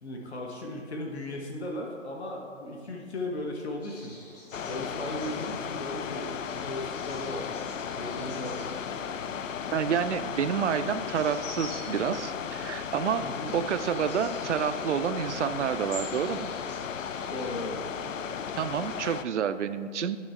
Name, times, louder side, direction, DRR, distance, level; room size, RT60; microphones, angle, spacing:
voice 1, 0.0-4.1 4.7-6.3 6.5-7.5 7.9-8.7 13.2-13.5 17.3-17.8, left 1 dB, 60° left, 0 dB, 1.3 m, -36 dB
sound 1, 3.8-17.6, left 1 dB, 30° left, 1.9 m, -49 dB
sound 2, 4.5-19.2, left 7 dB, 85° left, 0.5 m, -35 dB
voice 2, 9.7-13.3 13.5-16.5 18.5-20.2, right 8 dB, 65° right, 11 dB, 0.5 m, -29 dB
11.5 x 4.5 x 3.6 m, 2.1 s
figure-of-eight pair, 145°, 38 cm